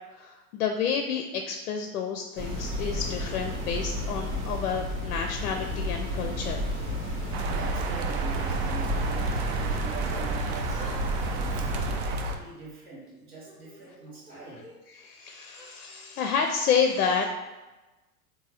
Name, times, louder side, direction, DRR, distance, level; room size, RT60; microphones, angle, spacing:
voice 1, 0.2-6.7 15.0-17.3, left 6 dB, 70° left, 4 dB, 0.5 m, -29 dB
sound 1, 2.4-12.0, left 1 dB, 70° right, 1.3 m, -32 dB
sound 2, 7.3-12.4, right 3 dB, 45° right, 0.5 m, -30 dB
voice 2, 7.4-10.9 11.6-14.6, right 3 dB, 85° right, -5 dB, 1.2 m, -43 dB
Yell / Crying sobbing, 10.1-11.0 11.2-12.6 13.1-14.8 15.5-15.7, right 1 dB, 15° right, 0.9 m, -50 dB
3.6 x 2.6 x 3.1 m, 1.1 s
figure-of-eight pair, 90°, 44 cm